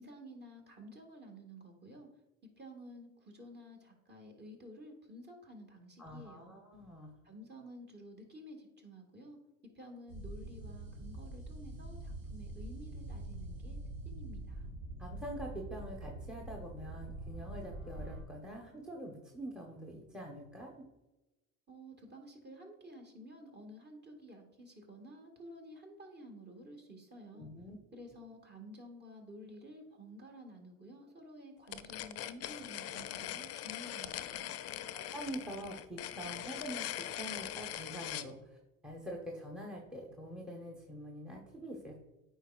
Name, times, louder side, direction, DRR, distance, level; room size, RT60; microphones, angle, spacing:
voice 1, 0.0-2.1 2.6-6.6 7.2-9.4 9.7-13.8 14.0-14.7 21.7-27.5 27.9-34.5, equal, 25° right, 3 dB, 1.7 m, -52 dB
voice 2, 6.0-7.1 15.0-20.8 27.3-27.8 34.9-36.8 37.1-38.6 38.8-42.0, right 1 dB, ahead, 0 dB, 1.0 m, -45 dB
sound 1, 10.1-18.2, right 2 dB, 85° right, 1.9 m, -45 dB
sound 2, 31.7-38.3, left 12 dB, 40° left, 0.5 m, -41 dB
9.1 x 4.3 x 2.4 m, 1.0 s
supercardioid pair, 85°, 38 cm